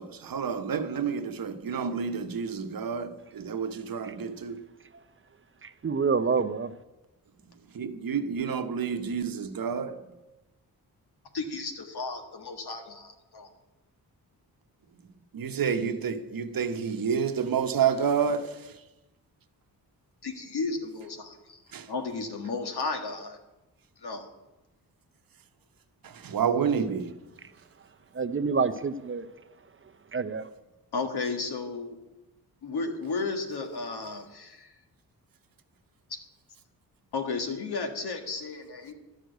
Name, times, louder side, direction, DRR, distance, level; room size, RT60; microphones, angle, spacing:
voice 1, 0.0-4.7 7.7-10.1 15.3-18.8 21.7-21.9 26.0-27.2, right 7 dB, 60° right, 1.0 m, -29 dB
voice 2, 5.6-6.7 28.1-29.3 30.1-30.5, right 5 dB, 35° right, 0.6 m, -27 dB
voice 3, 11.3-13.5 20.2-21.6 21.9-23.4 24.0-24.3 30.9-32.0 32.6-34.7 36.1-36.2 37.1-38.9, left 4 dB, 75° left, 1.8 m, -33 dB
11.5 x 6.5 x 9.2 m
cardioid pair, 90°, 39 cm